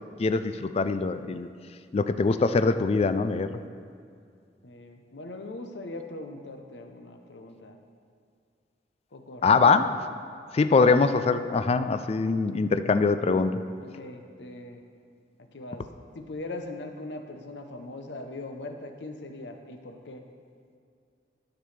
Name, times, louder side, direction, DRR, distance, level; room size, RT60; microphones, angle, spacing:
voice 1, 0.2-1.5 1.9-3.6 9.4-10.0 10.5-13.6, left 4 dB, 35° left, 10 dB, 0.3 m, -23 dB
voice 2, 4.6-7.8 9.1-9.9 10.8-11.0 13.8-14.8 15.5-15.9 16.1-20.2, left 2 dB, 75° left, 5 dB, 0.8 m, -40 dB
12.5 x 6.0 x 3.3 m, 2.3 s
head